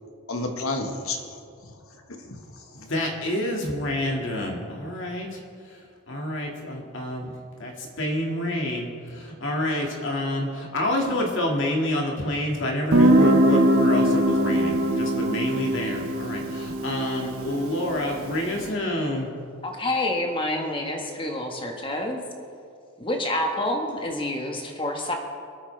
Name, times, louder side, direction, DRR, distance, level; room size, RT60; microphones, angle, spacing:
voice 1, 0.3-1.4 1.6-2.9, left 2 dB, 75° left, 4 dB, 1.5 m, -32 dB
voice 2, 2.8-5.4 6.1-7.3 7.6-19.3, left 1 dB, 60° left, 0 dB, 2.1 m, -28 dB
Guitar, 12.9-18.5, right 1 dB, 85° right, 1.4 m, -21 dB
voice 3, 19.6-22.2 23.0-25.1, left 1 dB, 25° left, 2 dB, 1.5 m, -28 dB
26.0 x 8.7 x 3.4 m, 2.3 s
head